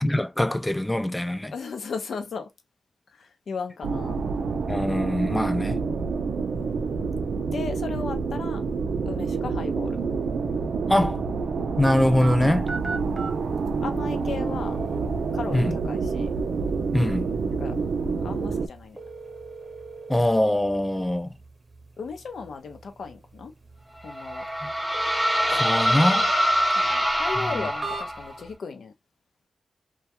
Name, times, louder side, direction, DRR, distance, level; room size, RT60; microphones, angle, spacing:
voice 1, 0.0-1.5 4.7-5.8 10.9-11.2 11.8-12.7 15.5-15.8 16.9-17.3 20.1-21.3 24.6-24.7 25.5-26.3 27.5-27.7, left 1 dB, 10° left, 0.4 m, -23 dB
voice 2, 1.5-2.5 3.1-4.2 6.5-6.8 7.5-8.6 9.1-10.0 13.8-14.8 15.3-16.3 17.5-17.8 18.2-19.0 22.0-23.5 24.0-24.4 26.7-28.9, left 5 dB, 80° left, 0.6 m, -36 dB
sound 1, 3.8-18.7, right 4 dB, 80° right, 0.4 m, -28 dB
sound 2, 11.8-28.5, right 4 dB, 40° right, 0.7 m, -41 dB
sound 3, 24.0-28.4, equal, 5° right, 0.8 m, -24 dB
2.3 x 2.2 x 2.8 m
cardioid pair, 55°, 0 cm